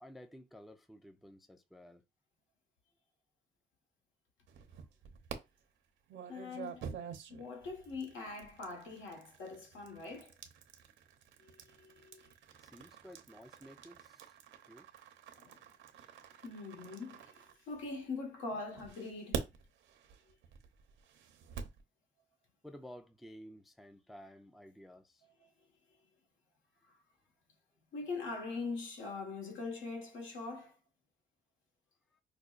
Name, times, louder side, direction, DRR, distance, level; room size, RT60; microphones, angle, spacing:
voice 1, 0.0-2.0 6.8-6.9 12.6-14.4 14.7-14.9 15.9-16.1 22.6-25.2 32.1-32.2, equal, ahead, 0.3 m, -54 dB
sound 1, 4.5-5.4 6.1-18.1 18.8-21.8, right 7 dB, 80° right, 0.7 m, -47 dB
voice 2, 6.3-6.9 7.3-10.3 11.4-12.3 15.3-15.6 16.4-19.4 25.4-25.5 27.9-30.7, left 3 dB, 80° left, 1.3 m, -43 dB
4.9 x 2.2 x 2.4 m
cardioid pair, 90°, 20 cm